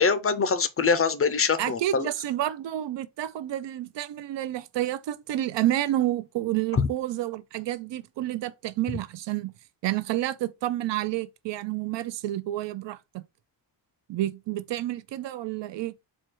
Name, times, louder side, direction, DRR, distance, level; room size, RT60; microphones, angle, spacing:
voice 1, 0.0-2.1 6.7-6.9, left 5 dB, 35° left, 0.4 m, -23 dB
voice 2, 1.6-9.5 9.8-13.2 14.1-15.9, right 14 dB, 85° right, 0.5 m, -29 dB
4.4 x 2.2 x 4.5 m
wide cardioid pair, 160°, 42 cm